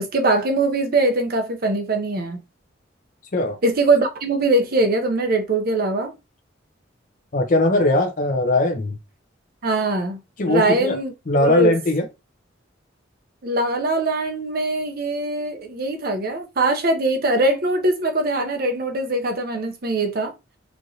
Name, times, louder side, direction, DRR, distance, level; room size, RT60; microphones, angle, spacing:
voice 1, 0.0-2.4 3.6-6.1 9.6-10.2 10.5-11.1 11.4-11.7 13.4-20.3, right 2 dB, 50° right, 0.7 m, -22 dB
voice 2, 7.3-9.0 10.4-11.0 11.3-12.1, left 1 dB, 45° left, 0.6 m, -19 dB
3.0 x 2.5 x 2.7 m
head